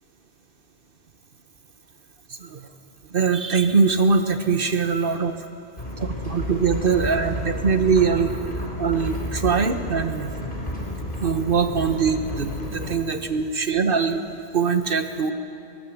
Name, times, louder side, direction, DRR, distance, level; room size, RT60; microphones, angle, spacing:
voice 1, 3.1-5.4 6.2-8.4 8.8-10.3 11.2-15.3, right 5 dB, 55° right, 8 dB, 1.4 m, -22 dB
sound 1, 5.8-12.9, left 1 dB, 50° left, 4.4 m, -31 dB
22.5 x 19.0 x 7.8 m, 2.8 s
omnidirectional pair, 1.1 m